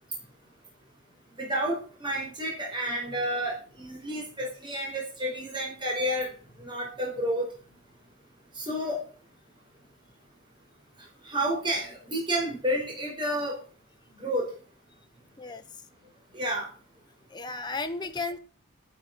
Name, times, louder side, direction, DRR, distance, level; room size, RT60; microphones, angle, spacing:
voice 1, 1.4-6.3 6.6-7.5 8.5-9.1 11.2-13.6 14.2-14.5 16.3-16.7, equal, 20° right, -2 dB, 4.7 m, -30 dB
voice 2, 17.3-18.4, left 3 dB, 20° left, 6 dB, 1.2 m, -34 dB
11.0 x 10.0 x 6.7 m, 0.40 s
head